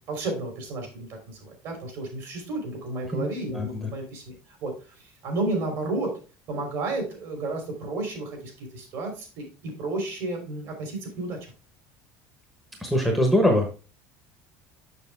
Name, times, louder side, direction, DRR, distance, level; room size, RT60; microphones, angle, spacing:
voice 1, 0.1-4.7 5.2-6.1 6.5-11.4, right 2 dB, 55° right, 3 dB, 3.3 m, -32 dB
voice 2, 3.5-3.9 12.8-13.8, left 1 dB, 5° right, 2 dB, 1.0 m, -23 dB
6.7 x 6.5 x 3.5 m, 0.33 s
cardioid pair, 160°, 6 cm